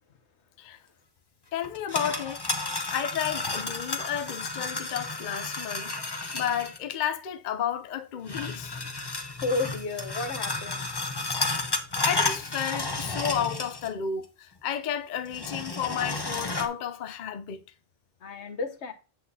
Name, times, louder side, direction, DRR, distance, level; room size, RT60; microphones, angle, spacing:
voice 1, 1.5-2.4 2.9-6.0 6.3-8.8 11.4-11.6 12.0-17.6, left 9 dB, 55° left, 0.6 m, -32 dB
sound 1, 1.6-6.8 8.3-14.0 14.2-14.3 15.2-16.7, left 3 dB, 25° left, 0.8 m, -32 dB
voice 2, 9.4-10.9 18.2-18.9, left 3 dB, 75° left, 1.3 m, -32 dB
8.5 x 7.9 x 2.7 m
omnidirectional pair, 1.2 m